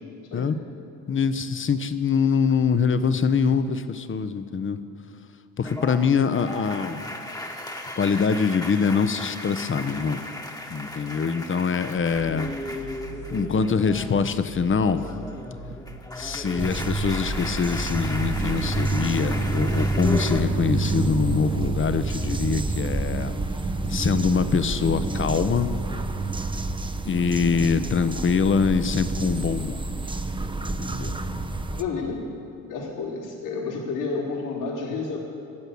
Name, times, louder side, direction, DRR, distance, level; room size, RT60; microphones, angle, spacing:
voice 1, 1.1-4.8 5.6-7.1 8.0-10.2 10.7-12.5 13.3-15.0 16.2-23.4 23.9-25.7 27.1-29.8 30.6-31.2, left 6 dB, 30° left, 12 dB, 0.9 m, -24 dB
sound 1, 5.6-14.4 14.7-20.4, left 1 dB, 10° left, 1.4 m, -36 dB
sound 2, 11.9-27.9, right 2 dB, 60° right, 1.5 m, -43 dB
sound 3, 16.6-31.8, right 2 dB, 10° right, 0.7 m, -28 dB
voice 2, 31.7-32.2 32.7-35.2, left 4 dB, 80° left, -8 dB, 3.8 m, -30 dB
14.0 x 7.9 x 8.6 m, 2.4 s
hypercardioid pair, 50°, 41 cm